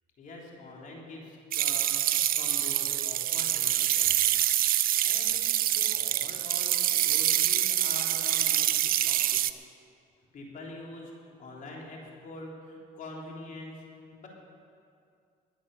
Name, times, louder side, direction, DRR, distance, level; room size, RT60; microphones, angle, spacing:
voice 1, 0.2-4.3 4.8-9.4 10.3-13.8 14.1-14.3, left 2 dB, 50° left, -1 dB, 3.4 m, -45 dB
sound 1, 1.5-9.5, right 12 dB, 60° right, 0.6 m, -26 dB
20.5 x 8.5 x 6.6 m, 2.4 s
cardioid pair, 110°, 17 cm